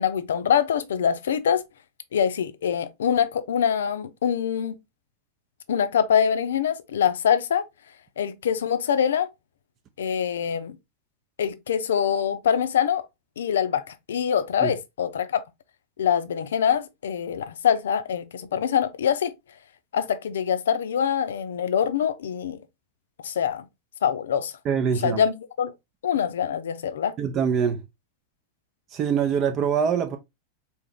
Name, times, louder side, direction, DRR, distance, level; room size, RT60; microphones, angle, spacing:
voice 1, 0.0-1.6 2.1-4.7 5.7-7.6 8.2-9.3 10.0-10.8 11.4-13.0 13.4-15.4 16.0-19.3 19.9-22.6 23.2-23.7 24.0-24.5 25.0-25.7 26.0-27.1, left 8 dB, 65° left, 0.5 m, -24 dB
voice 2, 24.6-25.2 27.2-27.8 28.9-30.2, right 7 dB, 30° right, 0.6 m, -24 dB
4.4 x 2.8 x 3.6 m
figure-of-eight pair, 90°, 0 cm